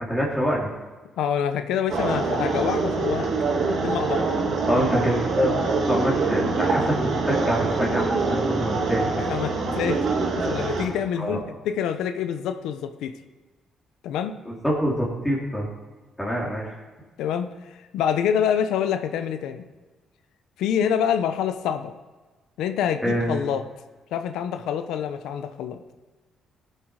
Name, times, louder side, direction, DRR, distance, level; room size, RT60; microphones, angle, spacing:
voice 1, 0.1-0.7 4.7-5.6 5.9-9.3 11.2-11.4 14.4-15.7 16.2-16.7 23.0-23.5, equal, 10° left, -5 dB, 3.1 m, -25 dB
voice 2, 1.2-3.3 3.7-4.3 9.3-10.0 10.4-13.1 14.0-14.3 16.4-16.5 17.2-17.5 17.9-19.7 20.6-21.9 22.6-23.6 24.1-25.8, left 8 dB, 85° left, 9 dB, 0.8 m, -26 dB
sound 1, 1.9-10.8, right 4 dB, 70° right, 2.7 m, -24 dB
17.5 x 7.8 x 4.8 m, 1.3 s
cardioid pair, 90°, 0 cm